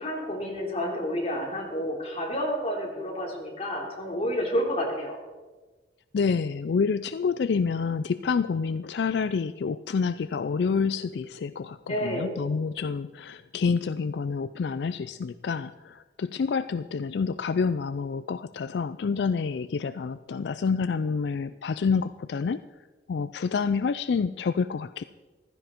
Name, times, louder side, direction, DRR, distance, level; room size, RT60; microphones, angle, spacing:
voice 1, 0.0-5.2 11.9-12.4, equal, 35° left, -1 dB, 3.3 m, -30 dB
voice 2, 6.1-22.6 23.1-25.0, left 5 dB, 70° left, 13 dB, 0.4 m, -28 dB
15.5 x 13.5 x 4.5 m, 1.3 s
head